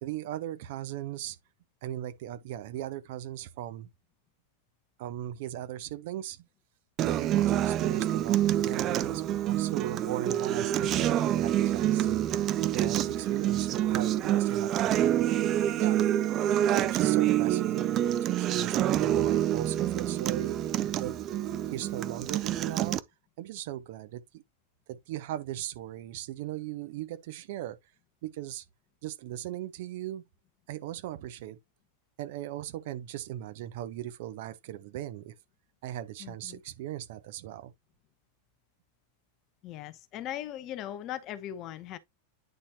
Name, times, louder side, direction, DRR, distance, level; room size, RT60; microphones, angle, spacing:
voice 1, 0.0-1.4 1.8-3.9 5.0-6.4 7.1-12.3 12.7-16.3 16.7-21.1 21.7-23.0 23.4-24.4 24.9-27.8 28.2-28.6 29.0-30.2 30.7-31.6 32.2-35.3 35.8-37.7, right 13 dB, 50° right, 0.8 m, -38 dB
Acoustic guitar, 7.0-23.0, right 12 dB, 35° right, 0.5 m, -27 dB
voice 2, 36.2-36.6 39.6-42.0, left 11 dB, 35° left, 0.8 m, -39 dB
9.0 x 4.2 x 2.9 m
figure-of-eight pair, 90°, 0 cm